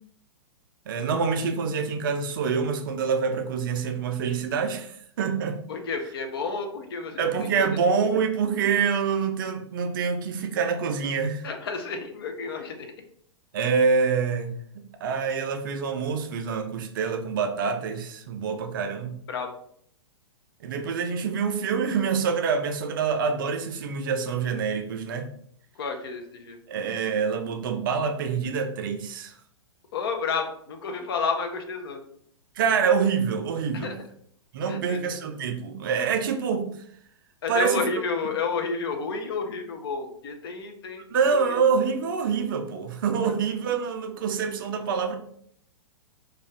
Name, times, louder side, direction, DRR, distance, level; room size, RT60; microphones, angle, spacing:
voice 1, 0.9-5.6 7.2-11.5 13.5-19.2 20.6-25.3 26.7-29.4 32.6-33.9 34.5-36.7 37.5-37.9 41.1-45.2, right 6 dB, 45° right, 5 dB, 0.4 m, -26 dB
voice 2, 5.7-7.3 7.6-7.7 11.4-12.9 19.3-19.5 25.8-26.6 29.9-32.0 33.8-34.0 34.7-35.0 37.4-41.6 43.2-43.3, left 4 dB, 55° left, 5 dB, 0.5 m, -31 dB
2.4 x 2.3 x 3.2 m, 0.66 s
figure-of-eight pair, 105°, 15 cm